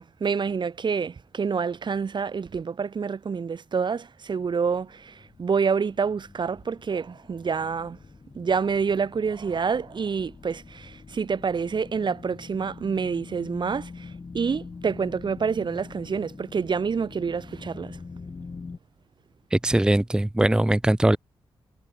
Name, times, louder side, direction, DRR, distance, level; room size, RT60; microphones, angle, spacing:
voice 1, 0.0-8.0 8.3-18.0, right 5 dB, 50° right, 1.3 m, -27 dB
sound 1, 4.2-18.8, left 4 dB, 35° left, 1.7 m, -44 dB
voice 2, 19.5-21.2, right 1 dB, 5° right, 0.6 m, -21 dB
wide cardioid pair, 105°, 10 cm